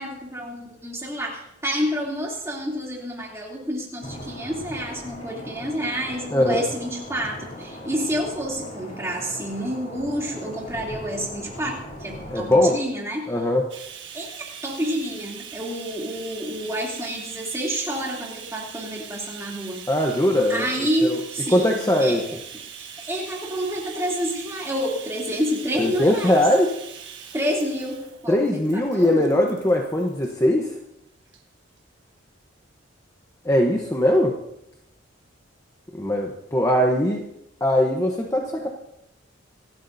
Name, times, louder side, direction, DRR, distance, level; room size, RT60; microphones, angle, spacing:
voice 1, 0.0-13.3 14.1-19.8 20.5-22.2 22.8-26.4 27.3-29.3, equal, 15° right, -3 dB, 2.9 m, -29 dB
sound 1, 4.0-12.8, equal, 40° left, 3.0 m, -39 dB
voice 2, 6.3-6.6 12.3-12.8 13.3-13.6 19.9-20.6 21.0-21.2 21.5-22.2 25.8-26.7 28.3-30.7 33.4-34.4 35.9-37.3 37.6-38.7, left 1 dB, 15° left, 1 dB, 0.9 m, -20 dB
Bathtub (filling or washing), 13.7-30.3 31.3-31.4 31.8-31.9, right 8 dB, 60° right, 1.5 m, -41 dB
26.5 x 12.0 x 2.7 m, 0.83 s
head